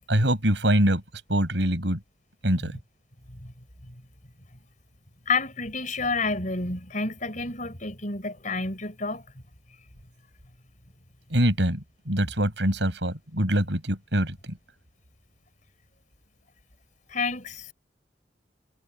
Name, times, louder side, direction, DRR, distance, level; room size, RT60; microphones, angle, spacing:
voice 1, 0.1-1.0 1.3-2.0 2.4-2.7 11.3-14.6, right 1 dB, 70° right, 7.3 m, -24 dB
voice 2, 5.3-9.2 17.1-17.7, left 3 dB, 45° left, 5.0 m, -30 dB
head